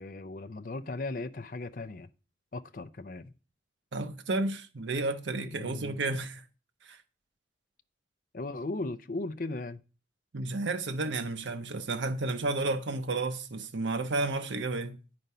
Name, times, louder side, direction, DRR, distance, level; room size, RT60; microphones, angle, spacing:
voice 1, 0.0-2.1 2.5-3.3 5.6-6.0 8.3-9.8, left 2 dB, 50° left, 0.5 m, -37 dB
voice 2, 3.9-6.4 6.8-7.0 10.3-15.0, right 2 dB, 90° right, 0.7 m, -32 dB
9.3 x 5.2 x 5.5 m
head